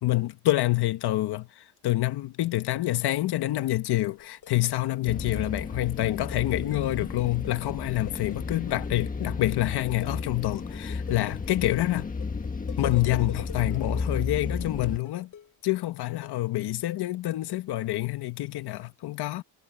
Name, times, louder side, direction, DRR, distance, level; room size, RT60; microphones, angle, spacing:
voice 1, 0.0-12.1 12.8-15.3 15.6-19.4, left 16 dB, 65° left, 1.5 m, -27 dB
sound 1, 3.9-5.9 6.1-7.8 8.1-15.8 16.2-16.4, left 10 dB, 45° left, 1.1 m, -45 dB
sound 2, 5.1-15.0, left 4 dB, 20° left, 1.7 m, -33 dB
cardioid pair, 155°, 43 cm